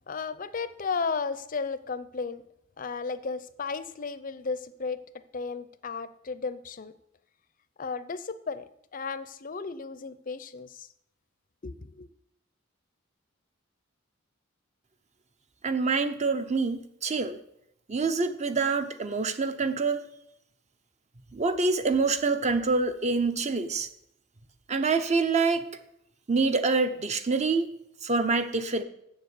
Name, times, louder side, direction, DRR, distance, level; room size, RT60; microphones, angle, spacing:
voice 1, 0.1-2.4 2.8-6.9 7.8-8.6 8.9-10.9 11.6-12.1, left 4 dB, 40° left, 14 dB, 0.5 m, -34 dB
voice 2, 15.6-17.4 17.9-20.1 21.3-23.9 24.7-25.6 26.3-27.7 28.0-28.8, right 4 dB, 35° right, 10 dB, 0.7 m, -26 dB
7.3 x 7.1 x 8.1 m, 0.77 s
head